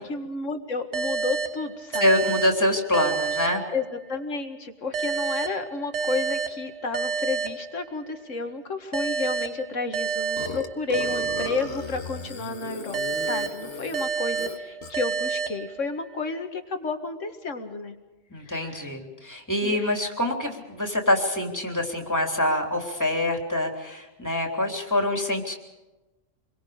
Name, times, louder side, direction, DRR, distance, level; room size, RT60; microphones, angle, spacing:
voice 1, 0.0-2.1 3.7-18.0 18.4-18.9 19.6-20.0, left 3 dB, 85° left, 6 dB, 2.2 m, -31 dB
sound 1, 0.9-4.3 4.9-8.2 8.9-12.3 12.9-16.2, right 5 dB, 65° right, 1.3 m, -30 dB
voice 2, 2.0-3.6 18.3-25.5, left 1 dB, 15° left, 2 dB, 3.4 m, -25 dB
Burping eructation, 10.4-15.1, left 4 dB, 65° left, 1.9 m, -36 dB
27.5 x 22.5 x 5.1 m, 1.1 s
omnidirectional pair, 1.3 m